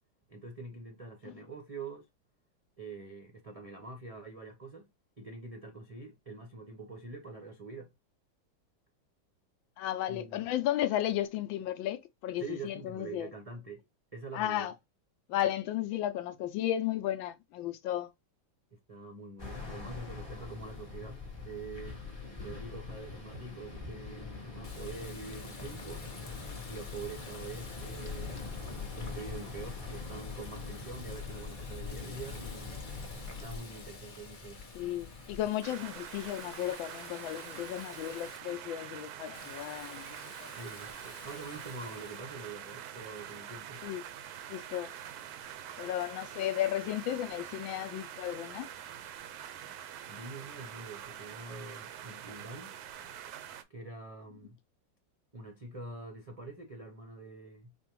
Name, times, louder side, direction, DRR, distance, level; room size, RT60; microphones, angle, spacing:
voice 1, 0.3-2.0 2.8-4.9 5.2-7.9 10.1-10.4 12.4-13.8 14.1-14.7 18.7-26.1 26.7-28.4 29.0-32.8 33.4-34.6 40.5-43.8 50.1-52.8 53.7-54.6 55.3-57.7, right 3 dB, 50° right, 0.4 m, -45 dB
voice 2, 9.8-13.3 14.3-14.7 15.3-18.1 34.7-40.5 43.8-44.0 44.5-44.9 45.8-48.7, left 12 dB, 80° left, 1.3 m, -34 dB
sound 1, 19.4-35.5, left 4 dB, 15° left, 1.0 m, -43 dB
Water tap faucet, 24.6-38.4 39.3-42.2, left 3 dB, 50° left, 0.6 m, -50 dB
sound 2, 35.6-53.6, right 10 dB, 70° right, 0.9 m, -45 dB
4.8 x 2.6 x 3.0 m
omnidirectional pair, 2.2 m